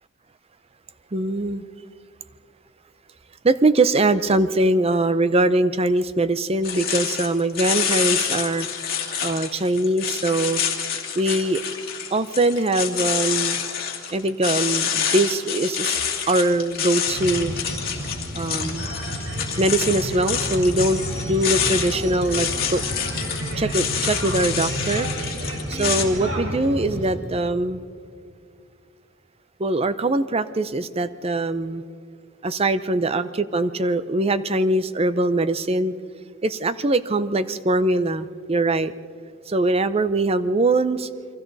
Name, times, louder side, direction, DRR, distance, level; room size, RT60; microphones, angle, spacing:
voice 1, 1.1-1.6 3.4-10.6 11.2-11.6 12.1-13.7 14.1-16.0 16.3-17.5 18.3-18.9 19.6-21.0 21.3-22.8 23.5-25.1 25.7-27.8 29.6-31.8 32.4-35.9 36.4-38.9 39.5-41.1, right 2 dB, 30° right, 13 dB, 0.6 m, -22 dB
sound 1, 6.6-26.0, left 8 dB, 50° left, 2.4 m, -27 dB
sound 2, 17.1-27.1, right 1 dB, 85° right, 4.4 m, -31 dB
29.0 x 23.5 x 4.1 m, 2.3 s
head